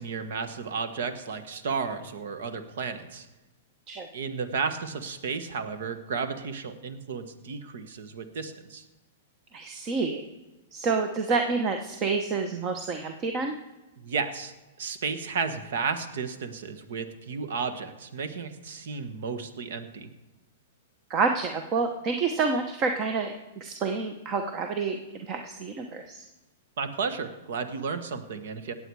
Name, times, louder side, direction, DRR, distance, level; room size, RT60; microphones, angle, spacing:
voice 1, 0.0-3.3 4.1-8.8 14.0-20.1 26.8-28.7, right 5 dB, 70° right, 9 dB, 1.4 m, -33 dB
voice 2, 9.5-10.2 10.7-13.5 21.1-26.2, right 4 dB, 35° right, 5 dB, 1.0 m, -28 dB
18.5 x 7.9 x 4.8 m, 1.0 s
hypercardioid pair, 135°, 0 cm